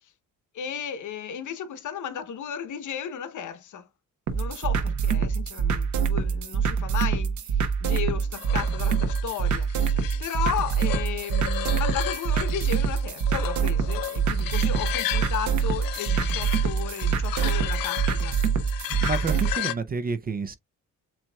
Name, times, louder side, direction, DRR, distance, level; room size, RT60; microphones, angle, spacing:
voice 1, 0.5-3.9 4.3-18.4, left 8 dB, 65° left, 0.9 m, -34 dB
sound 1, 4.3-19.5, right 6 dB, 60° right, 1.1 m, -25 dB
sound 2, 8.4-19.7, left 13 dB, 85° left, 0.6 m, -35 dB
voice 2, 18.8-20.6, right 4 dB, 25° right, 0.5 m, -29 dB
7.4 x 2.9 x 2.2 m
cardioid pair, 145°, 33 cm